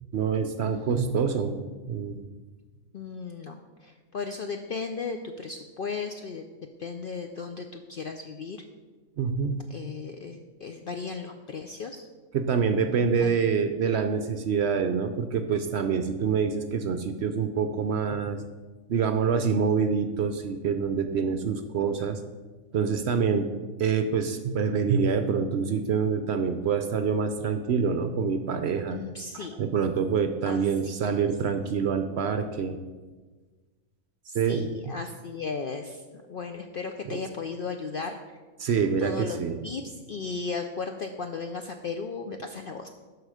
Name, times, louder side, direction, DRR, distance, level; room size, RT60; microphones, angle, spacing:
voice 1, 0.1-1.6 1.9-2.2 9.2-9.6 12.3-18.4 18.9-22.2 22.7-23.5 23.8-29.0 29.3-32.8 34.3-34.6 38.6-39.6, right 6 dB, 65° right, 8 dB, 0.7 m, -26 dB
voice 2, 0.6-1.0 2.9-6.4 6.8-8.6 9.7-12.1 13.2-13.4 28.9-29.6 30.5-31.3 34.3-38.4 39.0-42.9, left 4 dB, 65° left, 5 dB, 0.5 m, -36 dB
12.5 x 4.8 x 4.9 m, 1.3 s
omnidirectional pair, 1.5 m